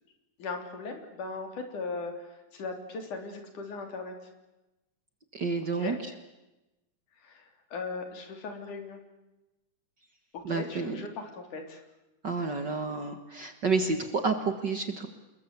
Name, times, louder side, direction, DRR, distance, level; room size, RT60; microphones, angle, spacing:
voice 1, 0.4-4.1 5.7-6.0 7.1-9.0 10.3-11.8, left 3 dB, 75° left, 5 dB, 4.9 m, -38 dB
voice 2, 5.3-5.9 10.4-11.0 12.2-15.1, right 4 dB, 45° right, 7 dB, 1.7 m, -30 dB
29.0 x 21.0 x 8.3 m, 0.99 s
omnidirectional pair, 3.6 m